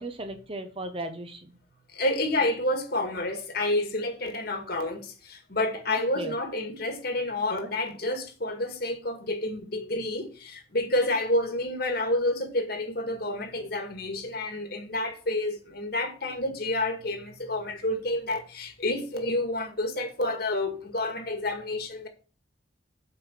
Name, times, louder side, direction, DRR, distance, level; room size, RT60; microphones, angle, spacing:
voice 1, 0.0-1.6 5.9-6.4, right 1 dB, 30° right, 1.1 m, -36 dB
voice 2, 1.9-22.1, left 1 dB, 50° left, 2.1 m, -29 dB
7.8 x 5.6 x 7.1 m
head